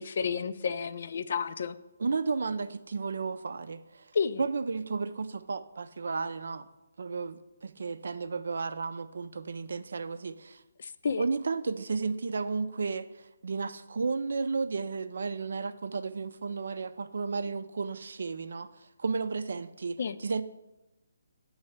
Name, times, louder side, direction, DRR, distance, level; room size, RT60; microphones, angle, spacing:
voice 1, 0.0-1.8 4.1-4.4 10.8-11.2 20.0-20.2, left 6 dB, 55° left, 13 dB, 0.3 m, -31 dB
voice 2, 2.0-4.1 4.4-6.7 7.0-10.6 11.2-20.4, right 4 dB, 70° right, 12 dB, 0.4 m, -33 dB
8.4 x 3.2 x 6.4 m, 0.98 s
hypercardioid pair, 160°, 0 cm